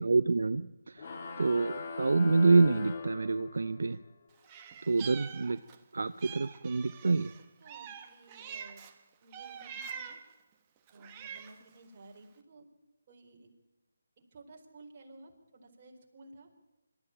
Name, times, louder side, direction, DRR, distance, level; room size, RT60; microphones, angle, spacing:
voice 1, 0.0-1.0 1.4-4.0 4.9-5.6 5.9-7.3, right 3 dB, 70° right, 12 dB, 0.6 m, -27 dB
sound 1, 1.0-3.9, left 4 dB, 40° left, 2.9 m, -39 dB
Meow, 4.4-5.8 6.2-8.9 9.3-10.3 10.9-11.7, right 7 dB, 20° right, 1.4 m, -45 dB
voice 2, 7.6-8.9 9.2-10.2 10.9-12.7 13.1-13.5 14.3-16.5, right 2 dB, 35° right, 0 dB, 4.5 m, -54 dB
25.5 x 13.0 x 8.8 m, 1.0 s
figure-of-eight pair, 160°, 0 cm